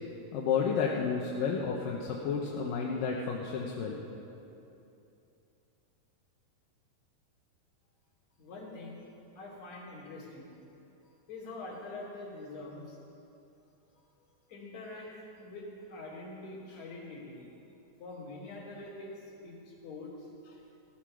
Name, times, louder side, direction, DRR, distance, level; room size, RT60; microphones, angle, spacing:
voice 1, 0.3-4.0, left 6 dB, 70° left, -2 dB, 2.5 m, -31 dB
voice 2, 8.4-9.1 9.4-10.5 11.0-13.0 14.5-17.5 18.0-20.6, left 2 dB, 50° left, -4 dB, 4.4 m, -45 dB
17.0 x 12.5 x 6.4 m, 2.8 s
omnidirectional pair, 4.6 m